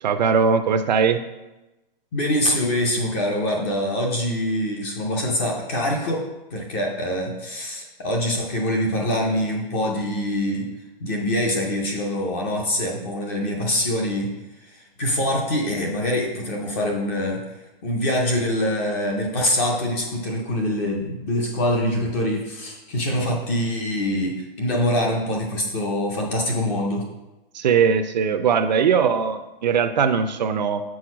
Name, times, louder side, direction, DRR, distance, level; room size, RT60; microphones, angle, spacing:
voice 1, 0.0-1.2 27.5-30.8, right 6 dB, 50° right, 9 dB, 0.5 m, -20 dB
voice 2, 2.1-6.2 6.5-10.7 11.0-14.3 14.6-17.4 17.8-27.0, left 1 dB, 15° left, 0 dB, 0.4 m, -24 dB
6.3 x 4.2 x 5.9 m, 1.0 s
hypercardioid pair, 165°, 29 cm